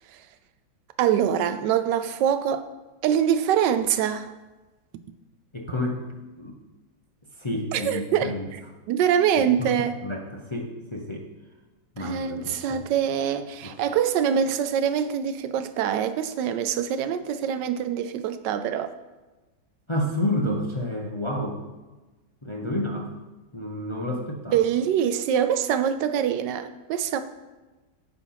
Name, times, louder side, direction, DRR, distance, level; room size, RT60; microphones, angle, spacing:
voice 1, 1.0-2.7 3.0-4.3 7.7-8.3 8.9-10.0 12.0-18.9 24.5-27.2, right 9 dB, 85° right, 10 dB, 1.2 m, -24 dB
voice 2, 5.5-6.0 6.4-6.6 7.3-8.5 9.4-9.7 10.0-11.3 12.0-12.8 13.6-13.8 19.9-21.6 22.4-23.1 23.5-24.6, left 1 dB, 30° left, -1 dB, 0.5 m, -30 dB
9.7 x 4.2 x 5.6 m, 1.2 s
omnidirectional pair, 1.9 m